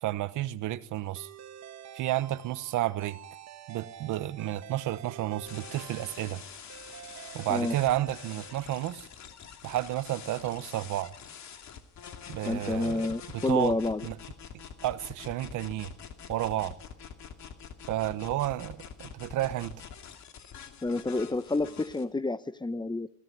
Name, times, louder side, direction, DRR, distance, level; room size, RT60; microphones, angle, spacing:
voice 1, 0.0-1.3 1.9-3.2 3.7-6.4 7.3-9.1 9.6-11.1 12.3-13.8 14.0-14.2 14.8-15.9 16.3-16.7 17.9-19.8, right 14 dB, 90° right, 1.1 m, -31 dB
sound 1, 1.2-9.3, right 9 dB, 60° right, 1.4 m, -48 dB
sound 2, 5.5-22.0, left 7 dB, 65° left, 2.7 m, -46 dB
voice 2, 12.5-14.1 20.8-23.1, left 2 dB, 15° left, 1.1 m, -29 dB
20.5 x 16.0 x 9.5 m
cardioid pair, 90°, 30 cm